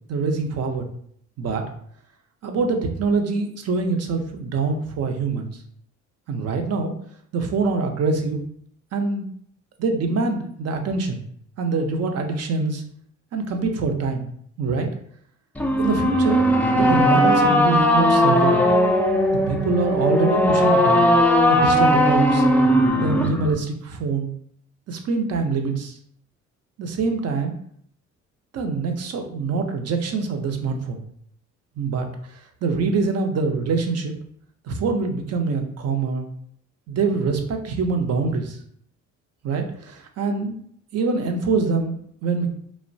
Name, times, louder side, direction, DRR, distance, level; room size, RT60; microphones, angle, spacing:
voice 1, 0.1-0.8 1.4-1.6 2.4-5.6 6.3-6.9 7.3-8.4 8.9-9.3 9.8-11.2 11.6-12.8 13.3-14.3 14.6-14.9 15.8-18.6 19.3-21.0 21.5-22.5 22.9-24.3 24.9-26.0 26.8-27.5 28.5-31.0 31.8-34.1 34.6-36.3 36.9-38.6 39.4-40.6 40.9-42.5, right 4 dB, 55° right, 5 dB, 0.5 m, -24 dB
sound 1, 15.6-23.5, equal, 5° left, 0.3 m, -18 dB
2.8 x 2.1 x 2.6 m, 0.65 s
cardioid pair, 90°, 30 cm